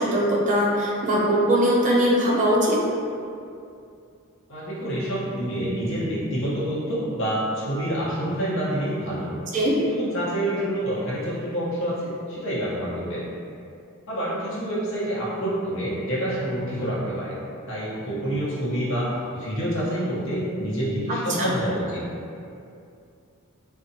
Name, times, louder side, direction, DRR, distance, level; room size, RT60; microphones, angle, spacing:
voice 1, 0.0-2.8 9.5-9.8 21.4-21.5, equal, 35° right, -4 dB, 0.4 m, -21 dB
voice 2, 4.5-9.3 9.9-13.2 14.1-17.3 17.7-22.1, right 1 dB, 60° left, -7 dB, 0.7 m, -27 dB
2.6 x 2.1 x 2.6 m, 2.5 s
head